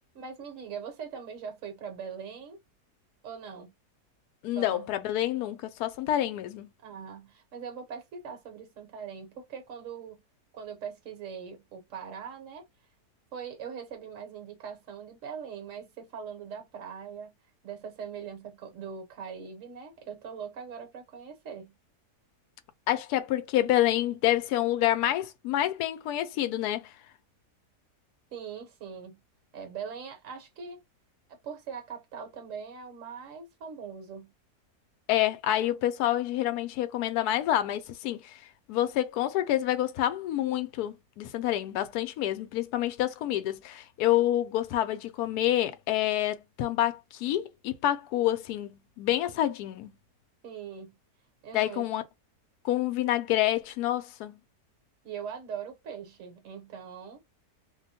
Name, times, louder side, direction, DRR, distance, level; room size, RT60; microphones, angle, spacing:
voice 1, 0.1-2.6 3.2-3.7 4.6-4.9 6.8-10.2 10.5-12.6 13.3-17.3 17.6-21.7 28.3-29.2 29.5-30.8 31.4-34.3 50.4-51.0 51.4-51.9 55.0-57.2, right 7 dB, 55° right, 1.2 m, -41 dB
voice 2, 4.4-6.7 22.9-26.9 35.1-38.4 38.7-49.9 51.5-52.0 52.6-54.4, left 13 dB, 80° left, 1.1 m, -28 dB
2.8 x 2.1 x 4.1 m
omnidirectional pair, 1.7 m